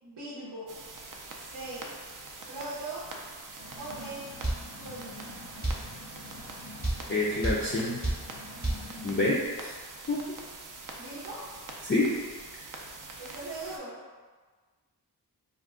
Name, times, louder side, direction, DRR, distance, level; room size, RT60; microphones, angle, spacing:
voice 1, 0.0-0.8 1.4-1.9 2.5-3.0 3.7-4.2 4.7-5.4 10.9-11.4 13.2-14.0, right 2 dB, 80° right, -10 dB, 0.8 m, -40 dB
sound 1, 0.7-13.8, right 3 dB, 50° right, 0.4 m, -44 dB
sound 2, 3.6-9.3, left 1 dB, 90° left, 0.6 m, -46 dB
sound 3, 4.4-4.6 5.6-5.8 6.8-7.0 7.4-7.6 8.0-8.2 8.6-8.8, right 1 dB, 25° right, 0.8 m, -28 dB
voice 2, 7.1-8.0 9.0-9.7 10.1-10.2 11.8-12.1, left 2 dB, 30° left, -5 dB, 0.4 m, -27 dB
2.5 x 2.2 x 3.5 m, 1.4 s
wide cardioid pair, 50°, 41 cm